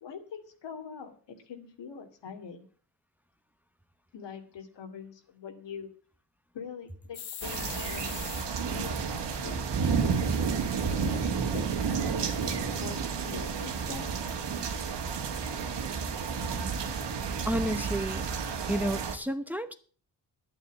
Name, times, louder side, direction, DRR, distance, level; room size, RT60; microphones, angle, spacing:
voice 1, 0.0-2.7 4.1-5.9 6.5-9.6 10.9-11.2 11.5-12.5 12.8-14.1, left 6 dB, 80° left, 2.5 m, -43 dB
sound 1, 7.1-8.5 10.2-11.3 13.4-13.9, left 10 dB, 60° left, 1.0 m, -43 dB
sound 2, 7.4-19.2, right 5 dB, 80° right, 2.0 m, -31 dB
voice 2, 17.5-18.3 18.7-19.7, right 1 dB, 5° right, 1.0 m, -31 dB
11.5 x 9.1 x 7.2 m
cardioid pair, 95°, 42 cm